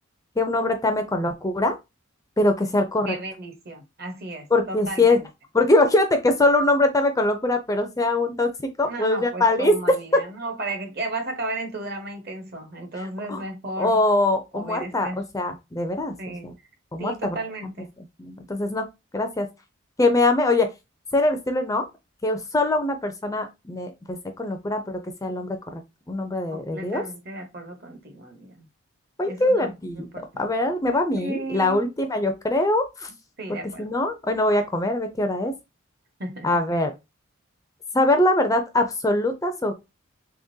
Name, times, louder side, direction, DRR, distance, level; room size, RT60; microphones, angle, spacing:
voice 1, 0.4-1.7 2.4-3.2 4.5-5.2 5.5-8.5 8.8-9.7 13.3-13.4 13.8-16.5 16.9-17.4 18.2-18.8 19.1-19.5 20.0-20.7 21.1-21.8 22.2-25.8 26.1-27.0 29.2-33.1 33.5-35.5 36.4-36.9 37.9-39.7, left 2 dB, 15° left, 0.4 m, -23 dB
voice 2, 3.1-5.2 8.8-14.0 14.5-15.2 16.2-16.5 17.0-17.9 26.5-28.6 29.2-30.5 30.9-31.8 33.4-33.9 36.2-36.5, right 2 dB, 50° right, 0.9 m, -34 dB
3.6 x 3.4 x 2.6 m
head